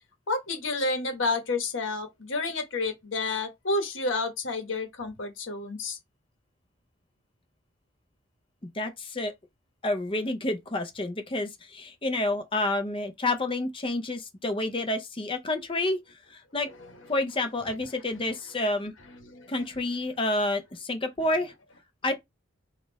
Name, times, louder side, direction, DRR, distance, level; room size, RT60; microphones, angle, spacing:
voice 1, 0.3-6.0 19.3-19.5, left 3 dB, 65° left, 1.1 m, -30 dB
voice 2, 8.7-9.3 9.8-16.7 17.1-18.9 19.5-21.5 22.0-22.2, left 2 dB, 25° left, 0.6 m, -29 dB
3.6 x 2.5 x 4.0 m
head